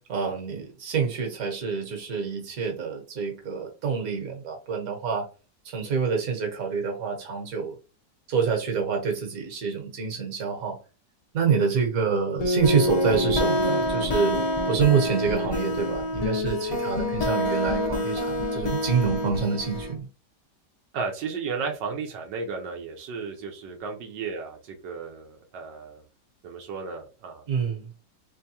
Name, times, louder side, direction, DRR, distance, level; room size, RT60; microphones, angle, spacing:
voice 1, 0.1-5.3 5.6-7.8 8.3-10.8 11.3-20.1 27.5-27.9, right 6 dB, 55° right, 2 dB, 1.5 m, -27 dB
sound 1, 12.4-19.9, left 1 dB, 40° left, 0.5 m, -26 dB
voice 2, 20.9-26.0 26.4-27.4, right 5 dB, 85° right, 3 dB, 1.4 m, -34 dB
3.7 x 3.4 x 2.8 m, 0.33 s
omnidirectional pair, 1.9 m